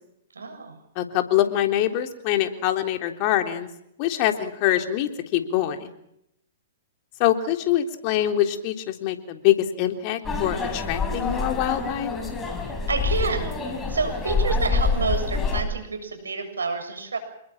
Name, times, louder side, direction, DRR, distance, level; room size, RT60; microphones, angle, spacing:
voice 1, 0.3-0.8 12.9-17.2, right 4 dB, 85° right, 7 dB, 7.2 m, -29 dB
voice 2, 1.0-3.7 4.0-5.9 7.2-12.1, left 12 dB, 45° left, 6 dB, 3.6 m, -24 dB
sound 1, 10.2-15.6, left 4 dB, 15° left, 5.8 m, -26 dB
29.0 x 21.0 x 7.4 m, 0.79 s
hypercardioid pair, 120°, 0 cm